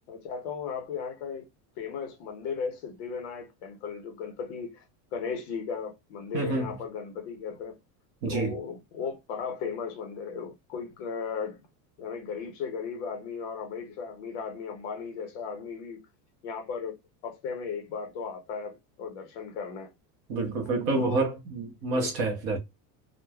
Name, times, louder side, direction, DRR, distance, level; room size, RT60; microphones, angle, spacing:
voice 1, 0.1-1.5 1.8-4.8 5.1-7.7 8.3-11.6 12.0-16.0 16.4-17.0 17.2-19.9 20.9-21.2 21.8-22.1, left 5 dB, 45° left, 0.6 m, -36 dB
voice 2, 6.3-6.7 8.2-8.5 20.3-22.6, right 3 dB, 35° right, 0.6 m, -28 dB
3.1 x 2.0 x 2.2 m
supercardioid pair, 180°, 49 cm